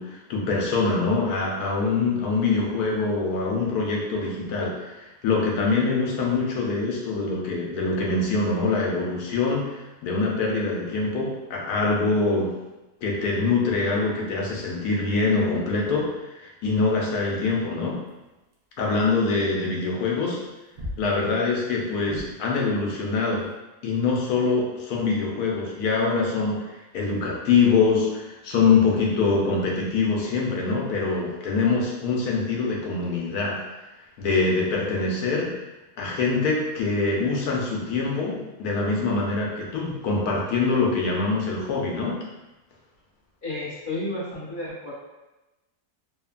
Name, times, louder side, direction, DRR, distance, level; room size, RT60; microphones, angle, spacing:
voice 1, 0.0-12.6 13.0-18.0 18.8-20.4 21.0-23.5 23.8-26.7 26.9-33.6 34.2-35.6 36.0-42.2, left 4 dB, 85° left, -2 dB, 1.2 m, -24 dB
sound 1, 18.0-23.5, left 2 dB, 65° right, 0.6 m, -42 dB
voice 2, 43.4-44.9, left 2 dB, 40° left, -9 dB, 0.8 m, -32 dB
3.1 x 2.1 x 2.4 m, 1.1 s
omnidirectional pair, 1.6 m